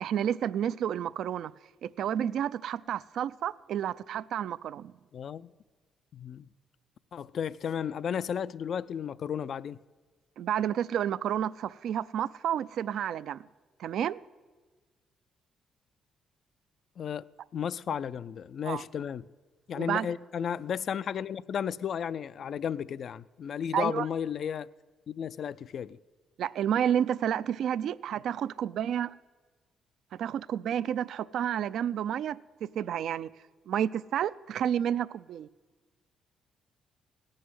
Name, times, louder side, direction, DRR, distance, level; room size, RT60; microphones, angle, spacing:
voice 1, 0.0-1.5 1.8-4.9 10.4-13.4 13.8-14.2 18.6-18.8 19.8-20.1 23.7-24.1 26.4-29.1 30.2-33.3 33.7-35.5, right 9 dB, 75° right, 0.4 m, -30 dB
voice 2, 5.1-5.5 6.1-6.5 7.1-9.8 17.0-19.2 19.7-24.7 25.1-26.0, left 8 dB, 60° left, 0.3 m, -34 dB
17.5 x 6.4 x 9.3 m
cardioid pair, 90°, 0 cm